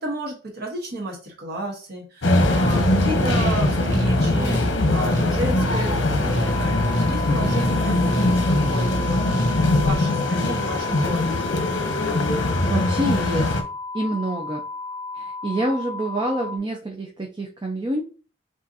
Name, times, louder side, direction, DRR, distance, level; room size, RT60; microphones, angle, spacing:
voice 1, 0.0-11.5, right 1 dB, 55° right, 0 dB, 1.2 m, -32 dB
sound 1, 2.2-13.6, left 2 dB, 85° left, 0.9 m, -22 dB
sound 2, 2.4-9.9, equal, 80° right, 1.1 m, -27 dB
sound 3, 6.4-16.6, left 3 dB, 25° left, 0.5 m, -34 dB
voice 2, 12.3-13.5 13.9-14.6 15.1-18.0, right 1 dB, 25° right, 1 dB, 0.6 m, -27 dB
6.3 x 2.5 x 2.7 m, 0.36 s
head